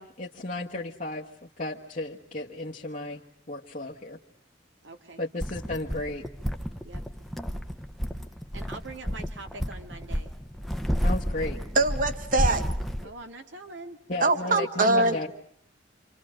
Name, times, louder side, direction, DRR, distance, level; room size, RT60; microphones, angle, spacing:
voice 1, 0.0-3.2 3.5-4.2 5.2-6.3 11.0-11.6 14.1-15.3, left 2 dB, 45° left, -2 dB, 1.4 m, -34 dB
voice 2, 4.8-5.2 6.8-7.0 8.5-10.3 13.0-14.0 14.5-15.2, right 2 dB, 80° right, 5 dB, 2.3 m, -42 dB
sound 1, 5.4-13.0, equal, ahead, 1.0 m, -31 dB
voice 3, 11.8-12.6 14.2-15.2, right 2 dB, 45° right, 9 dB, 1.8 m, -23 dB
28.0 x 26.5 x 6.4 m, 0.64 s
head